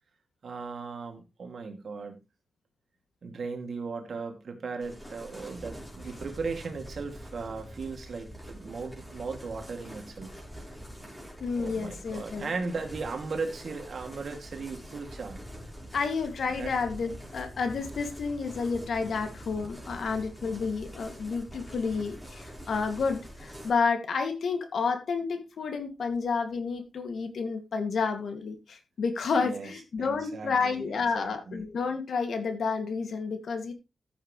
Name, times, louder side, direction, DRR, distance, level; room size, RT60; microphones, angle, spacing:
voice 1, 0.4-2.2 3.2-10.3 11.5-15.4 16.6-16.7 29.4-29.7 30.0-31.6, right 4 dB, 60° right, 5 dB, 2.5 m, -37 dB
sound 1, 4.8-23.7, equal, ahead, 4.6 m, -45 dB
voice 2, 11.4-12.5 15.9-33.7, left 5 dB, 70° left, 6 dB, 2.4 m, -30 dB
14.5 x 8.0 x 3.2 m, 0.26 s
wide cardioid pair, 150°, 0 cm